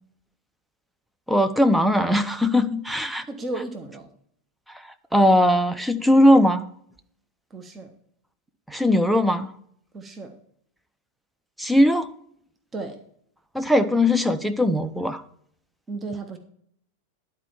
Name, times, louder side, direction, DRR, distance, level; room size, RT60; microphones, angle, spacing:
voice 1, 1.3-3.2 5.1-6.6 8.7-9.5 11.6-12.1 13.5-15.2, left 1 dB, ahead, 8 dB, 0.6 m, -19 dB
voice 2, 3.3-4.1 7.5-7.9 9.9-10.4 12.7-13.0 15.9-16.4, right 2 dB, 20° right, 5 dB, 1.0 m, -34 dB
11.0 x 4.5 x 7.0 m, 0.65 s
figure-of-eight pair, 90°, 0 cm